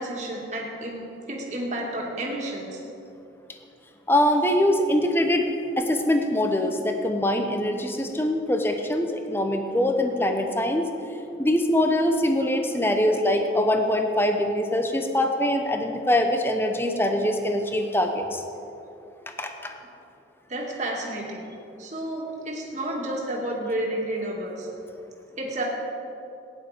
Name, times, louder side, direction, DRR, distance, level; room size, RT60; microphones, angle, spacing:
voice 1, 0.0-2.8 20.5-21.4 21.8-24.7 25.4-25.6, right 1 dB, 40° right, -2 dB, 2.3 m, -31 dB
voice 2, 4.1-5.5 5.8-10.9 11.4-18.4 19.4-19.8, left 1 dB, 10° left, 5 dB, 0.8 m, -23 dB
16.5 x 10.0 x 5.1 m, 2.8 s
head